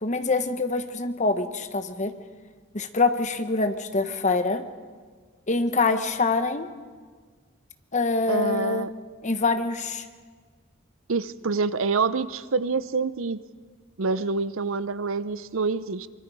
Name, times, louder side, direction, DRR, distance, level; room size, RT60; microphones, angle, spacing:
voice 1, 0.0-2.1 2.7-4.6 5.5-6.7 7.9-8.9 9.2-10.0, left 3 dB, 35° left, 9 dB, 1.1 m, -25 dB
voice 2, 8.3-8.9 11.1-13.4 14.0-16.1, right 4 dB, 65° right, 15 dB, 0.7 m, -26 dB
25.0 x 23.5 x 4.9 m, 1.5 s
head